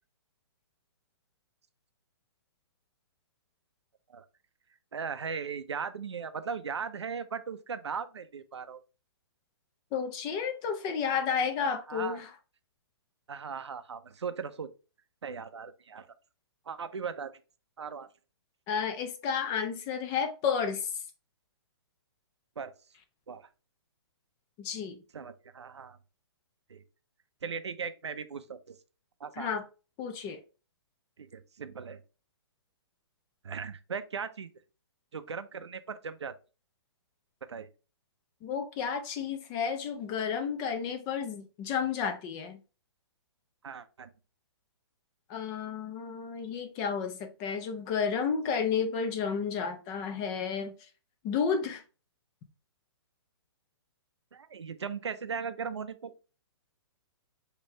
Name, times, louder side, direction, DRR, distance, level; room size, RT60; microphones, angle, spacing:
voice 1, 4.9-8.8 11.9-12.2 13.3-14.7 15.2-16.1 16.7-17.3 17.8-18.1 22.6-22.7 23.3-23.5 25.1-26.0 26.7-26.8 27.4-28.8 29.2-29.5 31.2-32.0 33.4-34.5 35.1-36.3 37.5-37.7 43.6-44.1 54.3-56.1, right 6 dB, 90° right, 0.6 m, -38 dB
voice 2, 9.9-12.3 18.7-20.9 24.6-25.0 29.4-29.6 30.0-30.4 38.4-42.6 45.3-50.7 51.2-51.8, left 6 dB, 30° left, 0.8 m, -31 dB
5.5 x 3.0 x 3.2 m
hypercardioid pair, 135°, 14 cm